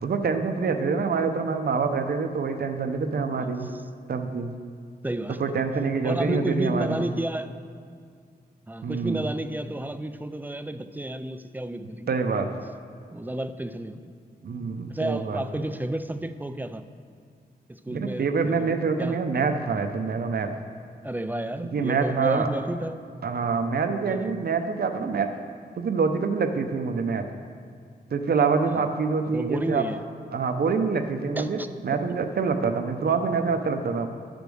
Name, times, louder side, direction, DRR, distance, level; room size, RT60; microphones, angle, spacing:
voice 1, 0.0-3.7 4.1-4.5 5.4-7.0 8.8-9.3 12.1-12.5 14.4-15.7 17.9-20.5 21.7-22.5 23.2-25.3 25.8-27.3 28.1-29.8 30.3-34.1, right 5 dB, 70° right, 6 dB, 0.7 m, -26 dB
voice 2, 5.0-5.4 6.0-7.5 8.7-12.1 13.1-14.1 14.9-16.8 17.7-18.7 19.0-19.2 21.0-23.0 24.1-24.3 28.8-28.9 29.3-30.0 31.4-31.7, right 1 dB, 10° right, 10 dB, 0.3 m, -31 dB
10.0 x 5.2 x 6.2 m, 2.2 s
wide cardioid pair, 125°, 17 cm